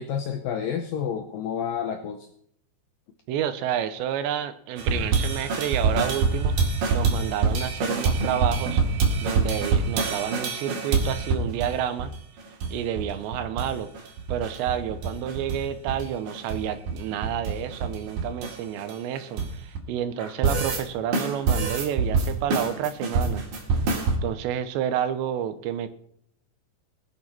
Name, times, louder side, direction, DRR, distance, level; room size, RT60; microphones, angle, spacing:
voice 1, 0.0-2.3, left 8 dB, 80° left, 5 dB, 2.0 m, -29 dB
voice 2, 3.3-6.6 6.9-8.8 9.2-12.1 12.7-13.9 14.3-23.4 24.2-25.9, right 10 dB, 90° right, 11 dB, 3.1 m, -29 dB
sound 1, 4.8-11.7 12.0-12.1 12.4-13.1 13.3-13.7 14.0-15.6 15.9-19.8 20.2-20.8 21.1-24.2, right 4 dB, 55° right, 3.4 m, -25 dB
20.0 x 8.6 x 4.4 m, 0.67 s
omnidirectional pair, 5.1 m